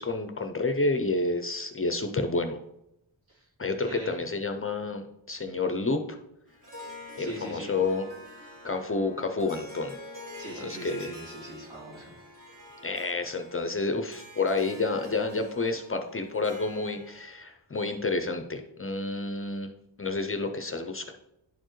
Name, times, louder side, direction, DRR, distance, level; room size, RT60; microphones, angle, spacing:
voice 1, 0.0-2.6 3.6-6.2 7.2-8.1 8.6-10.0 10.6-11.1 12.8-19.7 20.0-21.1, left 3 dB, 30° left, 6 dB, 0.4 m, -29 dB
voice 2, 3.8-4.2 7.2-7.7 10.4-12.2, right 1 dB, 80° right, -6 dB, 2.8 m, -41 dB
Harp, 6.5-17.4, left 1 dB, 40° right, 1.6 m, -47 dB
10.5 x 4.4 x 3.1 m, 0.83 s
wide cardioid pair, 170°, 46 cm